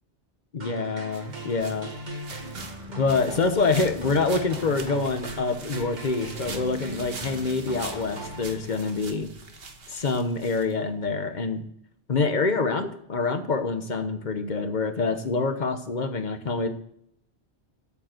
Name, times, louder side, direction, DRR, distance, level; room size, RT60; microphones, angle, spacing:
voice 1, 0.5-1.9 3.0-9.3 9.9-11.6 12.1-16.7, left 4 dB, 45° left, 8 dB, 1.1 m, -26 dB
sound 1, 0.6-9.0, right 1 dB, 40° right, 1.6 m, -39 dB
sound 2, 1.1-11.1, right 4 dB, 60° right, 1.4 m, -43 dB
8.5 x 7.7 x 7.7 m, 0.70 s
omnidirectional pair, 1.2 m